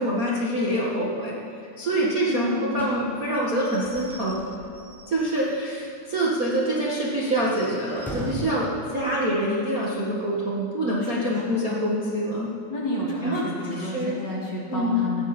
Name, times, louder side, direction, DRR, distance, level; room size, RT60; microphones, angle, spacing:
voice 1, 0.0-1.3 1.8-4.5 5.1-12.5 13.2-13.4 13.7-14.1 14.7-15.0, right 1 dB, 65° right, -6 dB, 0.8 m, -25 dB
voice 2, 2.3-2.9 11.0-11.6 12.7-15.2, left 1 dB, 30° left, -4 dB, 2.4 m, -31 dB
Slam / Squeak / Wood, 2.7-5.9 6.3-6.4 6.7-6.8 7.3-8.6, equal, ahead, 3.3 m, -39 dB
19.5 x 16.5 x 4.5 m, 2.5 s
omnidirectional pair, 5.0 m